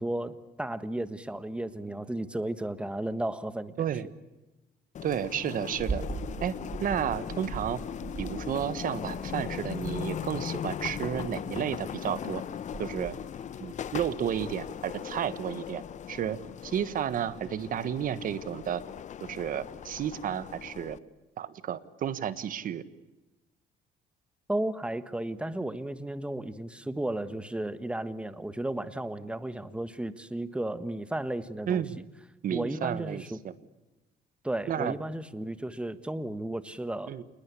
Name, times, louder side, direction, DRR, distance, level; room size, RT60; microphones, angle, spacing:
voice 1, 0.0-3.8 24.5-31.8 32.5-33.4 34.4-37.1, right 1 dB, 5° right, 13 dB, 1.4 m, -34 dB
sound 1, 4.9-21.0, left 9 dB, 45° left, 0.9 m, -39 dB
voice 2, 5.0-6.0 6.4-7.8 8.2-12.4 12.8-13.2 13.6-15.8 16.1-18.8 19.2-21.0 21.4-22.8 31.7-32.0 32.4-33.5 34.7-34.9 37.1-37.2, right 9 dB, 55° right, 15 dB, 1.4 m, -32 dB
sound 2, 5.8-15.3, right 4 dB, 30° right, 2.1 m, -41 dB
28.0 x 20.0 x 8.4 m, 1.1 s
cardioid pair, 110°, 17 cm